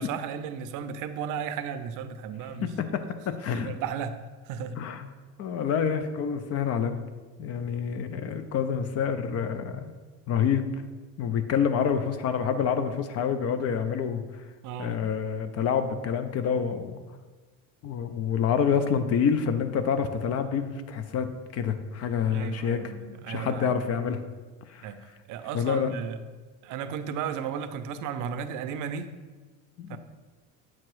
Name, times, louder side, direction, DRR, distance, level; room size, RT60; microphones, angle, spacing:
voice 1, 0.0-2.7 3.5-4.2 4.4-4.8 14.6-15.0 22.3-23.8 24.8-25.0 25.3-26.2 26.6-29.1 29.9-30.0, right 7 dB, 50° right, 10 dB, 0.5 m, -34 dB
voice 2, 2.6-3.7 4.8-5.1 5.4-7.0 7.4-10.0 10.3-10.7 11.2-14.2 14.8-17.0 17.8-21.3 21.5-22.8 23.3-24.2 24.7-24.9 25.5-25.9 29.8-30.0, left 7 dB, 40° left, 9 dB, 0.5 m, -27 dB
7.5 x 2.9 x 4.6 m, 1.3 s
supercardioid pair, 120°, 39 cm